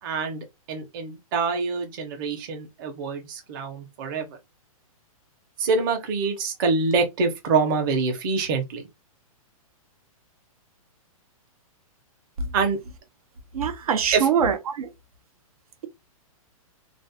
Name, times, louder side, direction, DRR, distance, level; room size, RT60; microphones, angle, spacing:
voice 1, 0.0-4.4 5.6-8.8 12.5-12.8 14.1-14.3, right 4 dB, 35° right, 0.7 m, -25 dB
voice 2, 13.5-14.9, right 7 dB, 85° right, 0.6 m, -23 dB
2.5 x 2.0 x 2.6 m
hypercardioid pair, 160°, 19 cm